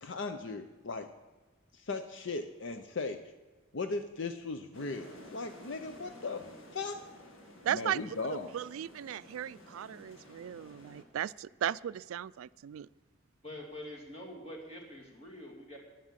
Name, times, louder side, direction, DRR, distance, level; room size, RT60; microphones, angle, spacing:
voice 1, 0.0-1.1 1.7-3.3 3.7-6.5 6.7-7.0 7.7-8.5, left 3 dB, 65° left, 8 dB, 0.6 m, -37 dB
sound 1, 4.7-11.0, left 1 dB, 80° left, 1.9 m, -53 dB
voice 2, 7.6-8.0 8.5-12.9, right 10 dB, 90° right, 19 dB, 0.3 m, -36 dB
voice 3, 13.4-15.8, left 1 dB, 30° left, -2 dB, 2.8 m, -45 dB
11.0 x 10.0 x 7.4 m, 1.3 s
head